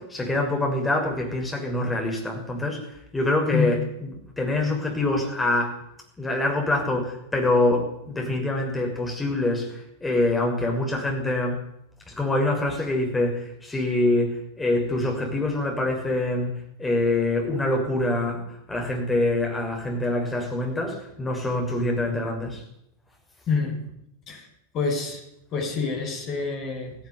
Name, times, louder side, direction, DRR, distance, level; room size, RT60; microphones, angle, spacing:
voice 1, 0.0-4.1 4.4-5.8 6.2-11.6 12.1-16.5 16.8-18.4 18.7-22.6, left 2 dB, 10° left, 0 dB, 6.7 m, -25 dB
voice 2, 23.5-23.9 24.3-24.5 24.7-25.2 25.5-27.0, left 4 dB, 35° left, 3 dB, 7.3 m, -27 dB
17.5 x 16.5 x 9.8 m, 0.79 s
figure-of-eight pair, 90°, 0 cm